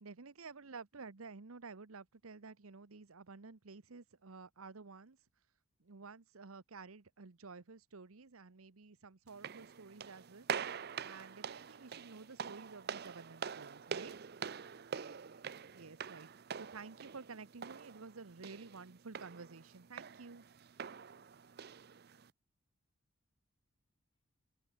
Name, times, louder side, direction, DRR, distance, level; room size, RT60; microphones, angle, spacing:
voice 1, 0.0-5.2 5.8-10.5 11.0-14.2 15.7-16.3 16.6-20.4, right 4 dB, 85° right, 1.0 m, -52 dB
voice 2, 0.6-1.1 23.5-23.6 24.1-24.4, left 1 dB, 85° left, 7.8 m, -86 dB
sound 1, 9.3-22.3, right 6 dB, 50° right, 0.6 m, -45 dB
open air
head